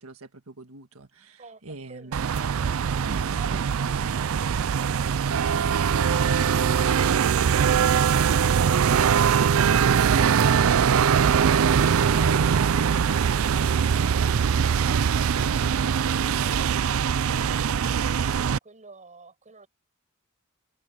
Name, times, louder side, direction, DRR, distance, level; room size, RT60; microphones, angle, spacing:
voice 1, 0.0-2.2 3.0-3.7 12.1-12.7, right 3 dB, 90° right, 1.6 m, -42 dB
sound 1, 2.1-18.6, right 7 dB, 70° right, 0.4 m, -22 dB
voice 2, 18.3-19.7, right 3 dB, 35° right, 5.5 m, -50 dB
head